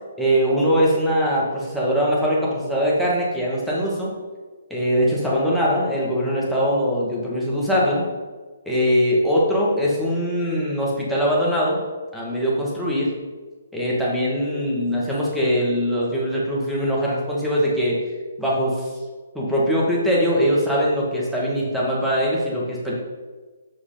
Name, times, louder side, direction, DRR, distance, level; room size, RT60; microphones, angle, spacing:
voice 1, 0.2-4.1 4.7-8.0 8.7-11.8 12.1-13.1 13.7-18.0 18.4-18.9 19.3-22.9, equal, ahead, -6 dB, 2.0 m, -21 dB
7.8 x 6.0 x 3.9 m, 1.3 s
hypercardioid pair, 140°, 0 cm